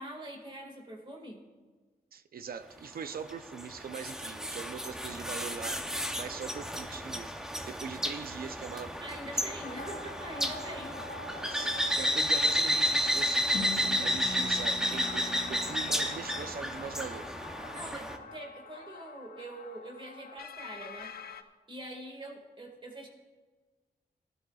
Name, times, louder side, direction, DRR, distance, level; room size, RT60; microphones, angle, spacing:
voice 1, 0.0-1.4 9.0-11.0 17.7-21.1 21.7-23.1, right 1 dB, 30° right, 2 dB, 2.1 m, -44 dB
voice 2, 2.1-5.8 6.1-7.3 7.7-9.0 9.3-9.4 11.3-17.3, right 6 dB, 70° right, 10 dB, 0.7 m, -42 dB
sound 1, 3.3-18.2, equal, 5° right, 0.8 m, -32 dB
sound 2, 8.8-21.4, left 3 dB, 75° left, 0.6 m, -47 dB
sound 3, 13.5-17.4, left 3 dB, 60° left, 2.8 m, -42 dB
18.0 x 12.0 x 2.4 m, 1.4 s
wide cardioid pair, 115°, 16 cm